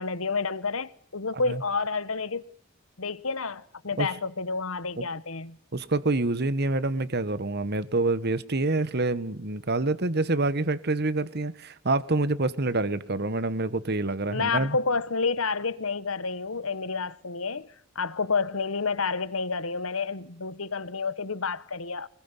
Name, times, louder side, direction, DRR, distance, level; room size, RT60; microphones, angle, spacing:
voice 1, 0.0-2.4 3.0-5.6 14.3-17.7 17.9-22.1, left 4 dB, 75° left, 1.4 m, -29 dB
voice 2, 5.7-14.8, right 2 dB, 50° right, 1.4 m, -27 dB
25.0 x 21.0 x 9.8 m
head